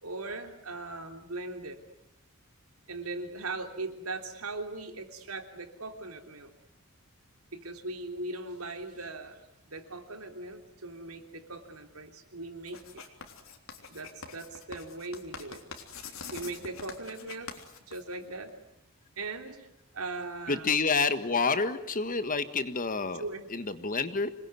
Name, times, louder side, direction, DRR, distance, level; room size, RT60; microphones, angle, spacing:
voice 1, 0.0-1.8 2.9-6.5 7.5-9.4 9.7-13.0 13.9-15.6 16.3-17.5 17.9-18.5 19.2-19.7 19.9-20.7 23.2-23.5, right 2 dB, 75° right, 6 dB, 3.5 m, -39 dB
Writing, 12.7-18.5, left 5 dB, 65° left, 3.6 m, -45 dB
voice 2, 20.5-23.2 23.5-24.3, left 4 dB, 40° left, 11 dB, 1.5 m, -28 dB
27.5 x 21.0 x 9.7 m, 0.80 s
head